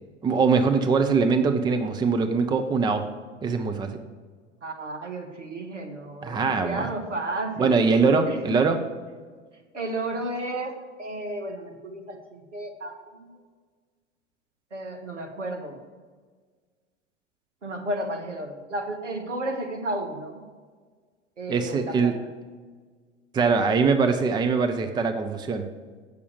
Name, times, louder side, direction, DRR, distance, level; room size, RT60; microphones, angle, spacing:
voice 1, 0.2-3.1 3.4-4.0 6.2-6.9 7.6-8.8 21.5-22.2 23.3-25.7, right 4 dB, 10° right, 7 dB, 0.6 m, -22 dB
voice 2, 4.6-7.8 8.3-8.4 9.7-13.3 14.7-15.8 17.6-20.4 21.4-22.1, right 1 dB, 80° right, 4 dB, 1.6 m, -33 dB
8.4 x 6.6 x 6.9 m, 1.5 s
figure-of-eight pair, 90°, 36 cm